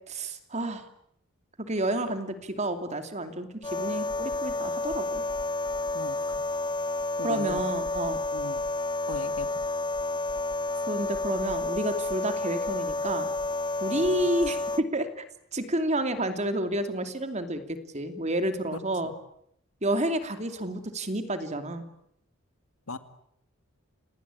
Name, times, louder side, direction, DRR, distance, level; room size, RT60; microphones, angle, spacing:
voice 1, 0.1-0.8 1.7-5.2 7.2-8.2 10.9-13.3 13.8-15.2 15.5-19.1 19.8-21.9, right 1 dB, 30° right, 8 dB, 2.7 m, -30 dB
sound 1, 3.6-14.8, left 2 dB, 20° left, 1.0 m, -30 dB
voice 2, 7.2-7.6 8.3-8.6 9.1-9.6 13.9-14.2 19.0-19.2 22.9-23.0, left 3 dB, 85° left, 10 dB, 2.3 m, -38 dB
30.0 x 18.5 x 9.9 m, 0.74 s
head